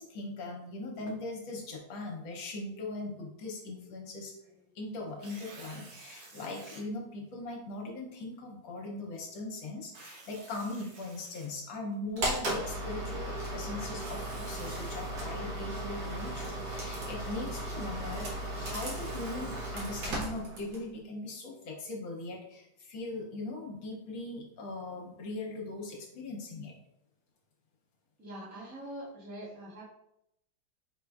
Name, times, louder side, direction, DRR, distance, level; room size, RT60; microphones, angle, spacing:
voice 1, 0.0-4.3 4.7-18.3 18.6-26.7, left 2 dB, 70° left, 0 dB, 1.4 m, -40 dB
Tearing, 5.1-6.8 7.5-7.6 9.8-11.9 13.8-15.1 18.2-19.6, right 3 dB, 80° right, 1.9 m, -52 dB
sound 1, 12.2-20.9, right 1 dB, 55° right, 1.4 m, -36 dB
voice 2, 28.2-29.8, right 1 dB, 10° right, -8 dB, 0.9 m, -44 dB
4.3 x 4.0 x 2.3 m, 0.81 s
omnidirectional pair, 2.4 m